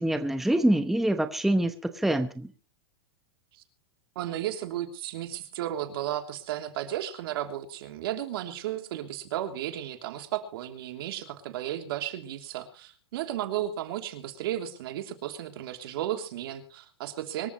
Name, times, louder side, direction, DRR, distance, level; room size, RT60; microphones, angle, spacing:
voice 1, 0.0-2.5, right 1 dB, ahead, 8 dB, 1.0 m, -25 dB
voice 2, 4.1-17.5, right 12 dB, 65° right, 5 dB, 3.1 m, -34 dB
24.5 x 14.0 x 3.1 m, 0.35 s
supercardioid pair, 150°, 13 cm